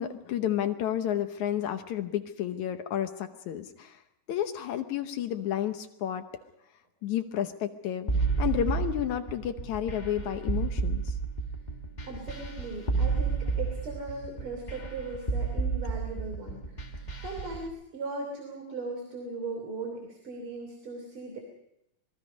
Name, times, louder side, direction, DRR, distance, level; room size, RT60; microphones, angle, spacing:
voice 1, 0.0-4.0 4.3-6.2 7.0-8.1 8.4-11.1, left 10 dB, 70° left, 8 dB, 2.2 m, -31 dB
sound 1, 8.1-17.6, right 4 dB, 25° left, 1.0 m, -30 dB
voice 2, 12.0-21.4, right 3 dB, 40° right, 2 dB, 3.8 m, -38 dB
26.5 x 21.5 x 5.3 m, 0.82 s
omnidirectional pair, 3.7 m